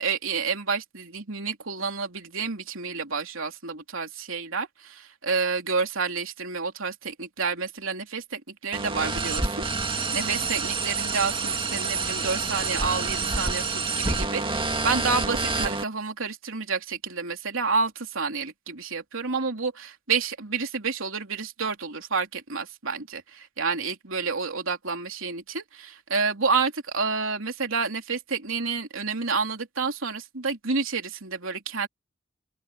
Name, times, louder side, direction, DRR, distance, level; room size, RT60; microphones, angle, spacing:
voice 1, 0.0-31.9, right 4 dB, 80° right, 3.3 m, -29 dB
sound 1, 8.7-15.8, right 4 dB, 25° right, 2.1 m, -28 dB
open air
head